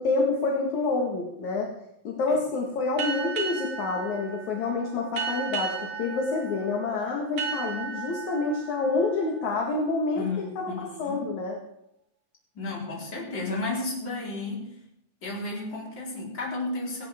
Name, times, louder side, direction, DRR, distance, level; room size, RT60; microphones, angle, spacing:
voice 1, 0.0-1.7 2.0-11.6, left 3 dB, 60° left, 0 dB, 3.0 m, -28 dB
sound 1, 3.0-10.3, right 6 dB, 90° right, 4.6 m, -35 dB
voice 2, 10.2-11.3 12.6-14.7 15.2-17.1, left 2 dB, 30° left, -3 dB, 5.0 m, -33 dB
18.0 x 18.0 x 3.7 m, 0.82 s
omnidirectional pair, 4.1 m